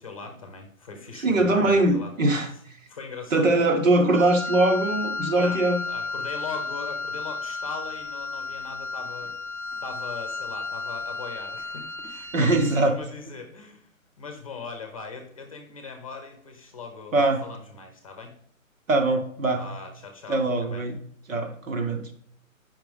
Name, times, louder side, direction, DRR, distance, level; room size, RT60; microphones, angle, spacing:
voice 1, 0.0-2.1 2.5-2.6 2.9-3.5 5.4-5.6 5.9-9.4 9.8-13.9 14.2-18.4 19.5-20.8, left 4 dB, 25° left, 5 dB, 0.8 m, -40 dB
voice 2, 1.2-2.7 3.3-5.8 12.3-13.0 13.3-13.4 17.1-17.5 18.9-19.7 20.3-21.0 21.3-22.1, right 2 dB, 70° right, 4 dB, 1.5 m, -22 dB
Wind instrument woodwind instrument, 4.1-13.0, left 4 dB, 50° right, 1.3 m, -33 dB
7.6 x 5.8 x 3.5 m, 0.64 s
hypercardioid pair, 170°, 41 cm